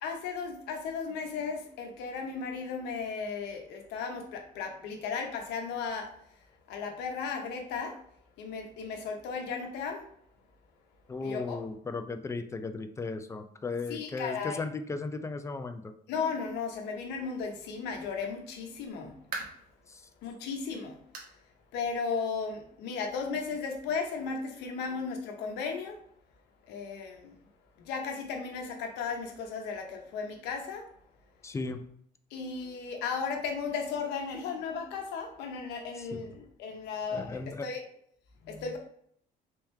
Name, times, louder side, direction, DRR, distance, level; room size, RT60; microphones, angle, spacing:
voice 1, 0.0-6.1 6.7-8.0 8.4-10.1 11.2-11.6 13.9-14.6 16.1-19.2 20.2-21.0 21.7-26.0 26.7-27.4 27.8-30.9 32.3-37.8 38.4-38.8, left 5 dB, 85° left, 3 dB, 0.8 m, -35 dB
voice 2, 11.1-15.9 19.9-20.0 31.4-31.8 36.0-36.1 37.1-37.6, left 3 dB, 15° left, 9 dB, 0.4 m, -36 dB
sound 1, 18.9-19.7 20.2-20.4 21.1-21.4 21.7-21.8 22.3-22.4 23.5-23.6, right 4 dB, 55° right, 0.9 m, -41 dB
3.4 x 3.0 x 3.3 m, 0.65 s
cardioid pair, 110°, 17 cm